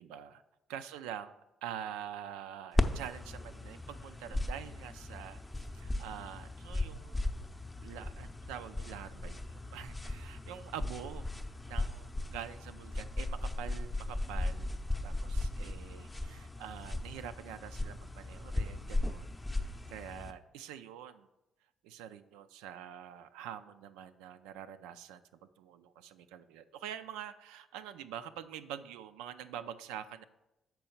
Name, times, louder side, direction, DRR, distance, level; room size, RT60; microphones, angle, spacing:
voice 1, 0.0-0.4 0.7-1.4 1.6-5.4 5.7-7.4 7.8-11.3 11.7-14.8 15.0-19.3 19.6-21.3 21.8-25.2 25.6-30.2, right 10 dB, 70° right, 11 dB, 0.3 m, -45 dB
sound 1, 2.8-20.3, left 2 dB, 15° left, 0.6 m, -37 dB
6.8 x 4.6 x 6.6 m, 0.94 s
figure-of-eight pair, 45°, 0 cm